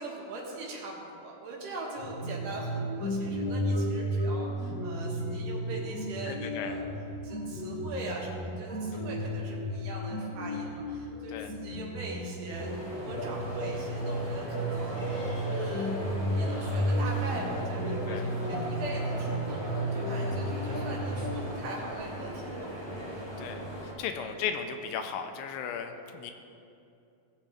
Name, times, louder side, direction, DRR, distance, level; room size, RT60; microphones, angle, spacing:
voice 1, 0.0-6.9 7.2-12.7 13.0-15.0 15.5-16.0 16.3-22.8 24.1-24.4, right 2 dB, 70° right, -2 dB, 3.0 m, -41 dB
sound 1, 2.0-21.4, equal, 30° left, 0.4 m, -33 dB
voice 2, 6.3-6.7 11.3-11.5 18.1-18.2 23.4-26.3, left 7 dB, 80° left, 6 dB, 2.3 m, -36 dB
sound 2, 12.5-23.9, right 1 dB, 15° left, 0.8 m, -39 dB
18.5 x 7.4 x 3.4 m, 2.7 s
omnidirectional pair, 4.1 m